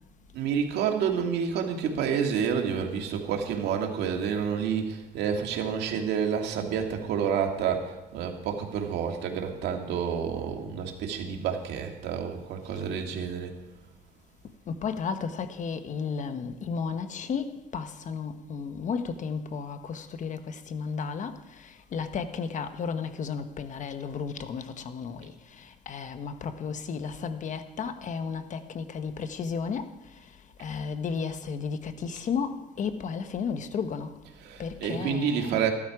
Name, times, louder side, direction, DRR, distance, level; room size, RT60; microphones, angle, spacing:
voice 1, 0.3-13.5 34.4-35.7, right 7 dB, 80° right, 2.1 m, -29 dB
voice 2, 14.7-29.9 30.6-34.1 34.6-35.7, left 6 dB, 45° left, 1.1 m, -33 dB
14.5 x 12.5 x 4.8 m
cardioid pair, 110°, 17 cm